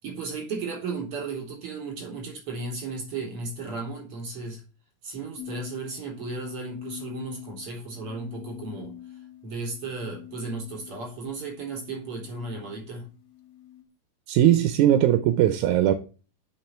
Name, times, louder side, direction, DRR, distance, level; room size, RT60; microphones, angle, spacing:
voice 1, 0.0-4.6 5.0-13.1, right 3 dB, 40° right, 4.7 m, -35 dB
sound 1, 5.4-13.8, left 12 dB, 75° left, 0.8 m, -44 dB
voice 2, 14.3-15.9, right 11 dB, 75° right, 2.0 m, -19 dB
7.5 x 6.1 x 6.8 m
omnidirectional pair, 3.8 m